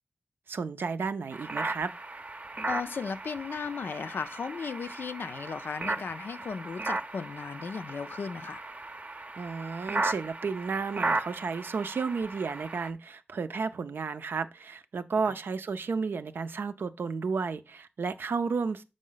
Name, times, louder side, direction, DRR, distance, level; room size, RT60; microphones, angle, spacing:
voice 1, 0.5-1.9 9.4-18.8, right 5 dB, 85° right, 0.5 m, -32 dB
sound 1, 1.3-12.9, right 2 dB, 40° right, 0.6 m, -36 dB
voice 2, 2.7-8.6 15.3-15.4, left 5 dB, 80° left, 0.4 m, -36 dB
6.3 x 5.0 x 3.8 m
wide cardioid pair, 60°, 4 cm